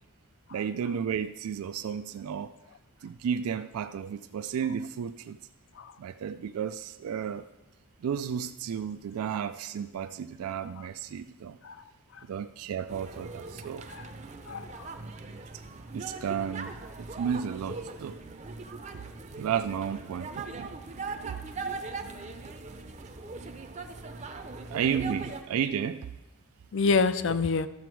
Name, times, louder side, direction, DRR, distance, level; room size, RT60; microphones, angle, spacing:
voice 1, 0.5-2.5 3.0-5.4 6.0-7.5 8.0-11.6 12.3-13.8 15.9-16.7 17.0-18.2 18.9-19.0 19.3-20.7 21.2-21.4 24.7-26.1, right 7 dB, 80° right, 0.3 m, -33 dB
sound 1, 12.9-25.4, right 3 dB, 30° right, 0.6 m, -40 dB
voice 2, 14.5-14.9 26.7-27.7, left 4 dB, 55° left, 0.4 m, -28 dB
13.0 x 6.9 x 4.6 m
head